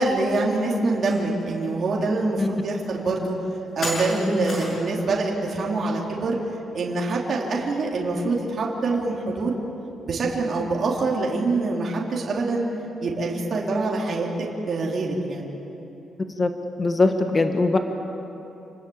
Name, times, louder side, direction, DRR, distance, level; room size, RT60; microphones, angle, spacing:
voice 1, 0.0-3.4 3.7-6.4 6.7-9.6 10.0-12.7 13.0-15.5, right 3 dB, 35° right, -2 dB, 3.2 m, -25 dB
sound 1, 1.1-1.2 1.7-1.8 2.8-2.9 3.8-4.9, left 1 dB, 35° left, 7.1 m, -31 dB
voice 2, 16.8-17.8, left 3 dB, 20° left, 6 dB, 1.3 m, -20 dB
29.0 x 20.5 x 8.6 m, 3.0 s
cardioid pair, 180°, 0 cm